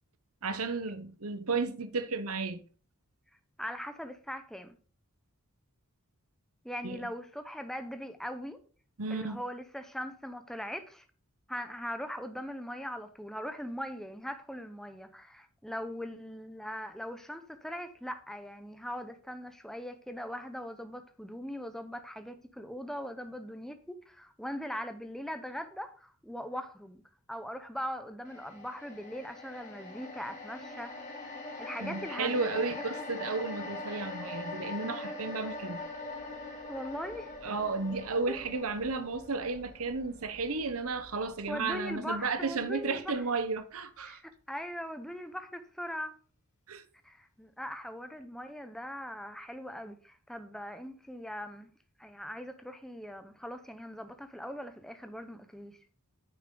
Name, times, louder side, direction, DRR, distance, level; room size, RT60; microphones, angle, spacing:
voice 1, 0.4-2.6 6.8-7.0 9.0-9.4 31.8-35.8 37.4-44.2 46.7-46.8, right 4 dB, 70° right, 1.0 m, -33 dB
voice 2, 3.6-4.8 6.6-8.6 9.1-11.0 11.5-27.0 27.3-30.9 31.6-32.7 36.7-37.3 38.3-38.4 41.5-43.2 44.0-46.2 47.0-51.7 52.0-55.8, equal, ahead, 0.7 m, -40 dB
sound 1, 28.2-42.6 42.9-43.1, left 2 dB, 35° left, 3.8 m, -43 dB
9.4 x 7.0 x 3.9 m
head